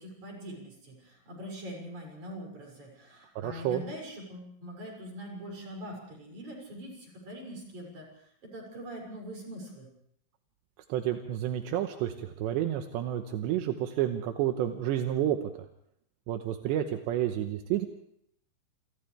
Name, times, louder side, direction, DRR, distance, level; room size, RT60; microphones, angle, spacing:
voice 1, 0.0-9.9, equal, 40° right, 0 dB, 7.7 m, -43 dB
voice 2, 3.4-3.8 10.9-15.4 16.3-17.9, right 11 dB, 80° right, 5 dB, 3.2 m, -30 dB
28.5 x 28.0 x 3.4 m, 0.70 s
omnidirectional pair, 5.1 m